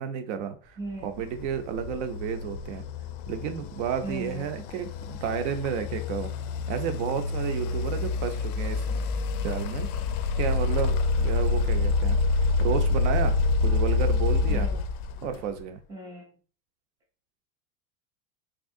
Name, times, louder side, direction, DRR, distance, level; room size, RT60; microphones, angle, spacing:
voice 1, 0.0-2.8 3.3-6.3 6.7-8.9 9.4-9.9 10.4-14.7 15.2-15.8, right 8 dB, 55° right, 8 dB, 0.6 m, -32 dB
voice 2, 0.8-1.2 4.0-4.5 14.5-14.8 15.9-16.3, right 2 dB, 10° right, -1 dB, 0.3 m, -37 dB
sound 1, 1.2-15.6, left 3 dB, 85° left, 0.5 m, -27 dB
3.6 x 2.8 x 2.6 m, 0.39 s
supercardioid pair, 170°, 43 cm